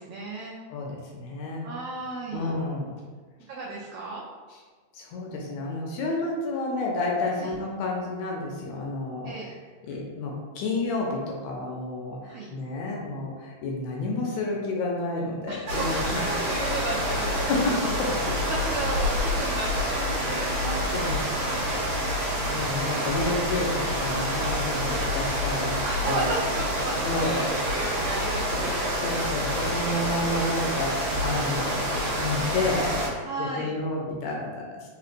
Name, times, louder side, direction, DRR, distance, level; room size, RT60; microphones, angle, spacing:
voice 1, 0.0-0.6 1.6-2.5 3.5-4.2 7.4-7.5 9.2-9.5 12.3-12.5 15.5-17.5 18.5-21.2 24.8-25.1 25.8-28.8 29.7-30.2 31.4-31.6 33.2-33.7, right 2 dB, 90° right, -4 dB, 1.3 m, -34 dB
voice 2, 0.7-1.7 2.3-3.0 4.9-9.3 9.9-16.4 17.2-18.1 19.9-21.4 22.5-26.3 27.0-27.5 28.5-28.6 29.0-34.7, left 2 dB, 75° left, -1 dB, 1.8 m, -30 dB
sound 1, 15.7-33.1, equal, 50° right, 1.7 m, -27 dB
4.1 x 4.1 x 2.5 m, 1.5 s
omnidirectional pair, 3.5 m